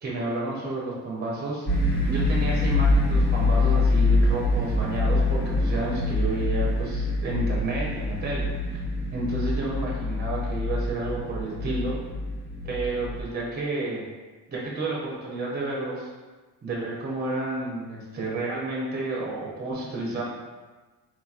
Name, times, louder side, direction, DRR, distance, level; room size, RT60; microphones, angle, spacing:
voice 1, 0.0-1.6 2.1-8.5 9.1-12.0 12.6-14.0 14.5-16.1 16.6-20.2, right 2 dB, 25° right, -4 dB, 0.8 m, -31 dB
sound 1, 1.7-13.2, left 2 dB, 25° left, 0.9 m, -25 dB
4.2 x 2.8 x 2.4 m, 1.3 s
cardioid pair, 150°, 39 cm